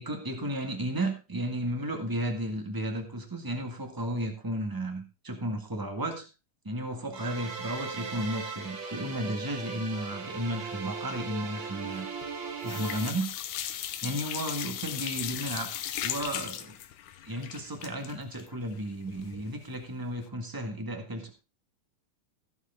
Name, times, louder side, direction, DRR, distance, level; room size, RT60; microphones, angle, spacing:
voice 1, 0.0-6.3 6.6-12.1 12.6-13.3 14.0-15.7 16.0-16.7 17.2-21.3, right 1 dB, 15° right, 4 dB, 0.6 m, -33 dB
sound 1, 7.1-13.1, right 4 dB, 45° right, 1.8 m, -38 dB
sound 2, 12.0-12.4 12.6-19.5 19.8-19.9 20.2-20.3, left 11 dB, 75° left, 2.0 m, -37 dB
14.0 x 8.0 x 3.8 m, 0.30 s
omnidirectional pair, 3.7 m